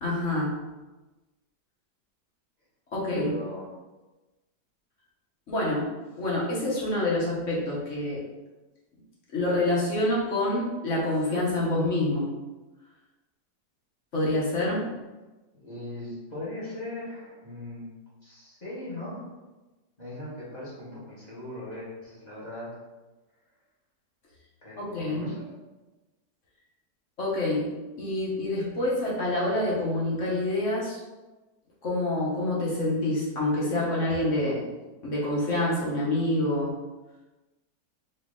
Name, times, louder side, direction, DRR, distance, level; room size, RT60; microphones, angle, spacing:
voice 1, 0.0-0.5 2.9-3.3 5.5-5.9 6.2-8.2 9.3-12.3 14.1-14.8 24.8-25.3 27.2-27.7 28.0-31.0 31.8-34.6 35.0-36.7, left 1 dB, 50° left, -5 dB, 1.3 m, -27 dB
voice 2, 3.1-3.8 14.8-15.0 15.5-17.9 18.2-19.3 20.0-22.8 24.6-25.6, left 1 dB, 25° left, -9 dB, 1.4 m, -39 dB
4.5 x 2.9 x 3.6 m, 1.1 s
omnidirectional pair, 1.9 m